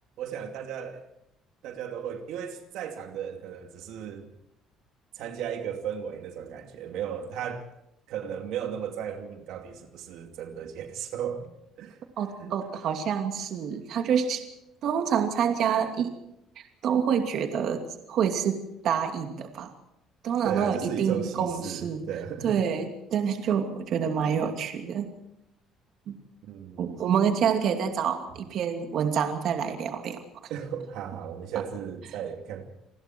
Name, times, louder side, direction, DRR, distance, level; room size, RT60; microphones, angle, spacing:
voice 1, 0.2-1.0 1.6-4.3 5.1-7.7 8.1-11.5 11.8-12.0 12.4-12.5 20.4-22.6 26.4-26.9 30.5-32.6, right 8 dB, 75° right, 5 dB, 2.6 m, -35 dB
voice 2, 12.2-14.4 14.8-16.1 16.8-17.8 18.1-19.7 20.2-22.0 22.4-25.1 26.1-26.2 26.8-30.2, right 7 dB, 55° right, 5 dB, 2.7 m, -27 dB
29.0 x 20.5 x 4.6 m, 0.82 s
cardioid pair, 155°, 0 cm